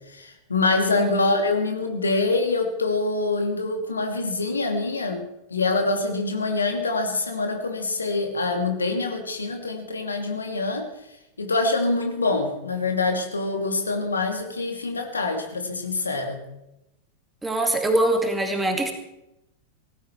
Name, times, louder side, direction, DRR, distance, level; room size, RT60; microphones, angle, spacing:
voice 1, 0.1-5.2 5.5-10.9 11.4-16.4, left 3 dB, 75° left, 4 dB, 2.6 m, -25 dB
voice 2, 17.4-18.9, right 1 dB, 10° right, 4 dB, 2.4 m, -23 dB
18.0 x 15.0 x 4.6 m, 0.88 s
figure-of-eight pair, 90°, 0 cm